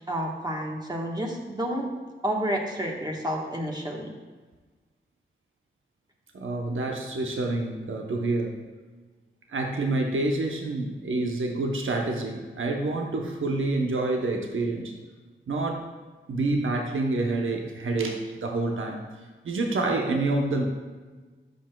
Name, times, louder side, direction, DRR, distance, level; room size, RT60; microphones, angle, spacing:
voice 1, 0.1-1.9 2.2-4.1, right 1 dB, 20° right, -1 dB, 1.3 m, -30 dB
voice 2, 6.3-8.6 9.5-14.9 15.5-15.9 16.3-20.6, right 2 dB, 75° right, 1 dB, 0.9 m, -28 dB
11.5 x 5.3 x 2.3 m, 1.3 s
cardioid pair, 50°, 21 cm